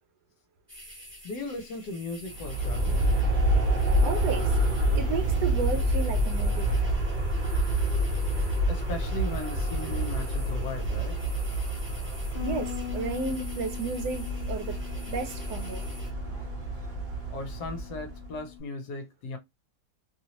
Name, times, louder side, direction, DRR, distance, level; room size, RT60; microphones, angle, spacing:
sound 1, 0.7-16.1, equal, 10° right, 0.8 m, -48 dB
voice 1, 1.2-3.1 8.7-11.2 17.3-19.4, left 3 dB, 65° left, 1.1 m, -37 dB
Aircraft, 2.3-18.3, right 1 dB, 45° right, 0.6 m, -28 dB
voice 2, 4.0-4.6 4.9-6.7 12.4-14.8 15.1-15.8, right 4 dB, 70° right, 1.1 m, -33 dB
Bass guitar, 12.4-18.6, left 16 dB, 35° left, 1.1 m, -42 dB
3.0 x 2.7 x 2.8 m
omnidirectional pair, 2.0 m